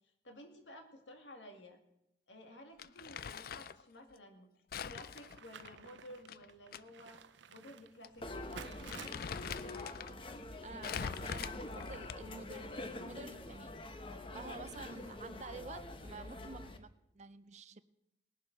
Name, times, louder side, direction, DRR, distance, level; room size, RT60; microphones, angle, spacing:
voice 1, 0.0-1.8 2.3-4.5 4.8-7.2 7.5-8.3, left 1 dB, 80° left, 2.3 m, -54 dB
Crumpling crinkling, 2.8-3.8 4.7-6.8 7.1-7.2 8.0-8.2 8.6-10.1 10.8-12.4, left 7 dB, 50° left, 0.4 m, -43 dB
sound 1, 5.1-11.9, right 7 dB, 80° right, 0.6 m, -55 dB
sound 2, 8.2-16.8, left 2 dB, 30° left, 1.0 m, -45 dB
voice 2, 10.6-13.8 14.3-17.8, right 4 dB, 40° right, 0.5 m, -50 dB
19.5 x 7.5 x 6.0 m
head